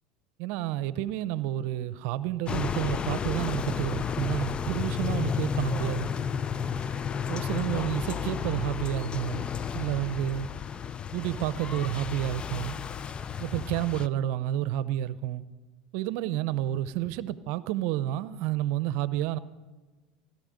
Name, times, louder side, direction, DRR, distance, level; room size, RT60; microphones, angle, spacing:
voice 1, 0.4-6.1 7.3-9.5 9.7-10.5 11.1-12.7 13.4-15.4 15.9-19.4, right 13 dB, 65° right, 0.7 m, -30 dB
sound 1, 2.5-14.1, left 7 dB, 30° left, 0.4 m, -32 dB
16.5 x 13.0 x 5.2 m
hypercardioid pair, 95°, 3 cm